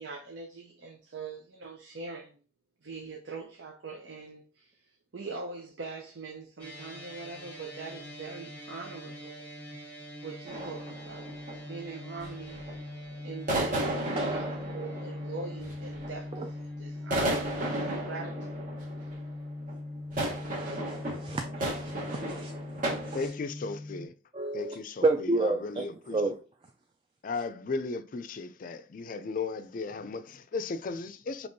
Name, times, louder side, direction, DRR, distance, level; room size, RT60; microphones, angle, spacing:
voice 1, 0.0-2.4 2.8-9.5 10.2-11.3 11.7-12.9 13.2-14.5 14.7-18.6, right 4 dB, 80° right, 0.7 m, -42 dB
sound 1, 6.6-24.1, left 1 dB, 10° left, 0.8 m, -41 dB
sound 2, 10.5-11.8 12.2-12.8 13.5-16.5 17.0-23.3, right 1 dB, 45° right, 1.2 m, -34 dB
voice 2, 13.8-14.6 20.2-22.5 23.1-23.2 24.3-24.7 25.0-26.4, right 2 dB, 30° right, 0.3 m, -31 dB
voice 3, 23.1-24.1 24.5-26.2 27.2-31.5, left 4 dB, 45° left, 0.4 m, -36 dB
5.2 x 3.0 x 2.6 m
head